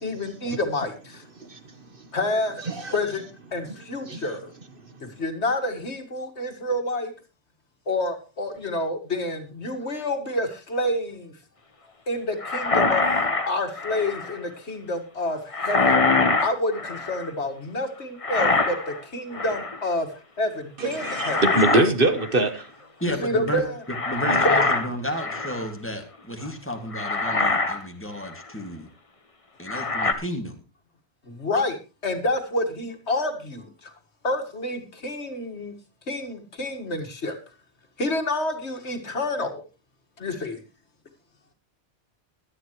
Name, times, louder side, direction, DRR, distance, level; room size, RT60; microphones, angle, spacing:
voice 1, 0.0-1.2 2.1-3.2 3.5-4.5 5.0-7.1 7.9-11.3 12.1-13.0 13.5-20.1 20.4-21.4 23.0-23.8 24.4-24.7 31.3-33.9 34.2-35.7 36.1-37.4 38.0-39.6 40.2-40.6, left 1 dB, 75° left, 6 dB, 2.3 m, -28 dB
sound 1, 12.4-14.4 15.5-17.3 18.2-19.0 19.3-19.8 21.0-21.9 22.2-22.4 23.9-25.7 26.4-26.5 26.9-27.8 28.2-28.4 29.7-30.1, left 3 dB, 30° left, 1.3 m, -24 dB
voice 2, 20.8-22.6, right 2 dB, 50° right, 9 dB, 1.5 m, -22 dB
voice 3, 23.0-23.6 24.1-28.9 29.6-30.5, equal, 10° left, 4 dB, 2.1 m, -32 dB
17.5 x 11.5 x 3.1 m, 0.30 s
omnidirectional pair, 1.2 m